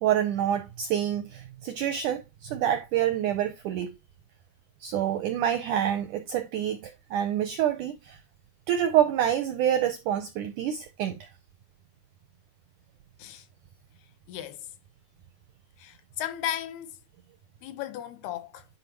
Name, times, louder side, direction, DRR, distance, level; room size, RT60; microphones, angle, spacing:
voice 1, 0.0-3.9 4.8-8.2 8.7-11.3, right 10 dB, 80° right, 1.8 m, -27 dB
voice 2, 14.3-14.7 15.8-16.9 17.6-18.7, left 11 dB, 80° left, 3.0 m, -35 dB
10.5 x 5.5 x 3.0 m
omnidirectional pair, 4.6 m